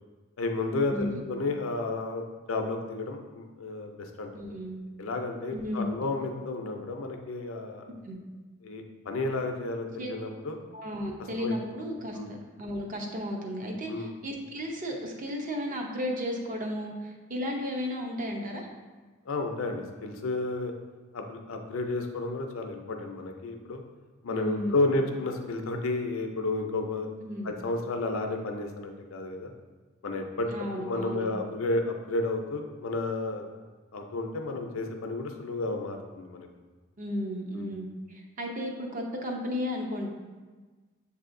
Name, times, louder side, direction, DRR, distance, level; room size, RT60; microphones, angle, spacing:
voice 1, 0.4-4.3 5.0-7.8 8.6-10.6 11.4-11.5 12.1-12.3 13.9-14.1 19.3-20.7 21.1-23.8 24.2-27.1 27.4-29.5 30.0-33.4 33.9-36.5 37.5-37.7, left 2 dB, 75° left, 4 dB, 0.5 m, -32 dB
voice 2, 0.9-1.2 4.3-4.8 5.5-5.9 8.0-8.2 10.0-10.1 10.7-18.7 24.3-24.9 27.2-27.5 30.5-31.3 37.0-40.1, equal, 40° right, 1 dB, 0.6 m, -34 dB
6.9 x 2.7 x 2.5 m, 1.3 s
head